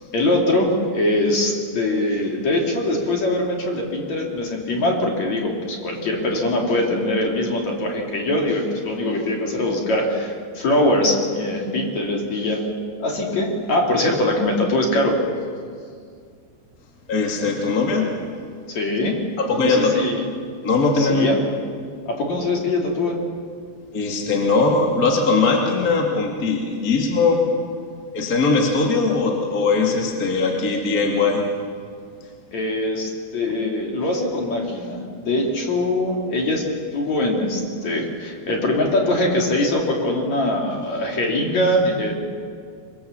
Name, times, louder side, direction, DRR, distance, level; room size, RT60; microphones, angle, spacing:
voice 1, 0.1-12.7 13.0-15.3 18.7-19.2 19.6-20.2 21.0-21.4 22.1-23.2 32.5-36.6 36.9-42.1, left 1 dB, 45° left, 0 dB, 3.6 m, -22 dB
voice 2, 17.1-18.2 19.4-20.0 20.6-21.5 23.9-27.6 28.1-31.6, left 3 dB, 30° left, 1 dB, 2.0 m, -20 dB
25.5 x 23.0 x 7.3 m, 2.2 s
omnidirectional pair, 5.2 m